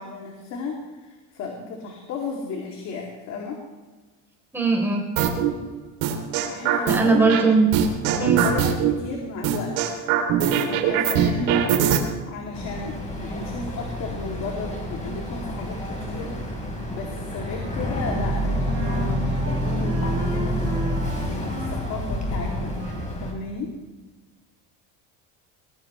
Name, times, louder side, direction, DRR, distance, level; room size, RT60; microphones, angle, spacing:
voice 1, 0.0-3.6 6.4-7.4 8.0-10.0 10.6-11.7 12.3-16.3 16.9-20.7 21.2-22.8 23.2-23.7, left 4 dB, 45° left, 0 dB, 2.7 m, -34 dB
voice 2, 4.5-5.0 6.8-7.7 8.2-8.4, right 4 dB, 5° right, -1 dB, 3.6 m, -19 dB
sound 1, 5.2-5.5 6.0-7.4 7.7-8.9 9.4-12.0, right 9 dB, 85° right, 3.2 m, -21 dB
Boat Water vehicle, 12.5-23.3, equal, 20° left, 3.8 m, -28 dB
Wind instrument woodwind instrument, 17.5-23.2, right 3 dB, 25° right, 3.9 m, -37 dB
21.0 x 20.0 x 3.2 m, 1.3 s
cardioid pair, 165°, 38 cm